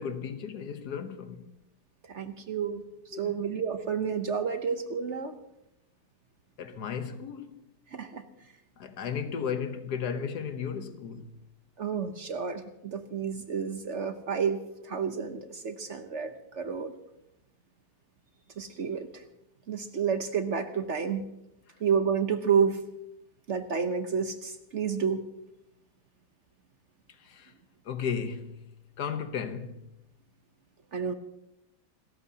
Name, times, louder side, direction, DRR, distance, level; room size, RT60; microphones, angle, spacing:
voice 1, 0.0-1.4 3.1-3.4 6.6-7.6 8.8-11.3 27.2-27.5 27.8-28.7 29.0-29.9, left 7 dB, 70° left, 1.5 m, -35 dB
voice 2, 2.0-2.8 3.1-5.3 7.9-8.2 11.8-14.6 14.8-16.9 18.6-19.2 19.7-21.3 21.8-22.8 23.5-25.2 30.9-31.1, right 6 dB, 50° right, 1.1 m, -30 dB
27.5 x 14.0 x 2.9 m
omnidirectional pair, 1.8 m